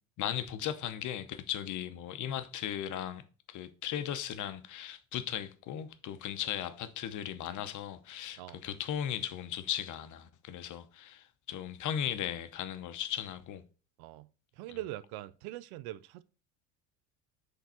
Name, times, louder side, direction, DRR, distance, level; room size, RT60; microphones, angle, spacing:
voice 1, 0.2-3.2 3.5-13.6, left 10 dB, 50° left, 0.8 m, -37 dB
voice 2, 14.0-16.2, right 15 dB, 65° right, 0.5 m, -43 dB
5.7 x 3.8 x 4.3 m
supercardioid pair, 90°, 40 cm